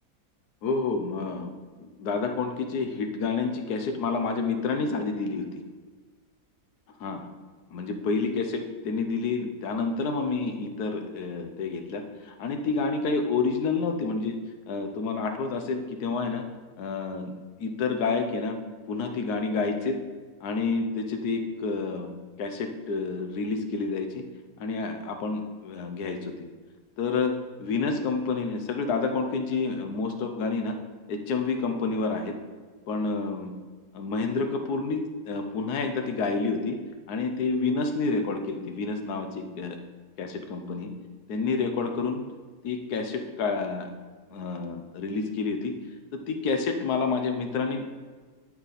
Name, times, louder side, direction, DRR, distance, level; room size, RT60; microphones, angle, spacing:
voice 1, 0.6-5.6 7.0-7.3 7.7-14.4 14.7-16.4 16.8-18.6 18.9-20.0 20.4-22.1 22.4-24.2 24.6-26.5 27.0-30.8 31.1-32.3 32.9-33.5 33.9-36.8 37.1-39.8 40.2-40.9 41.3-42.2 42.6-43.9 44.3-45.7 46.1-47.8, left 4 dB, 75° left, 5 dB, 1.3 m, -29 dB
11.0 x 4.2 x 4.1 m, 1.5 s
omnidirectional pair, 1.7 m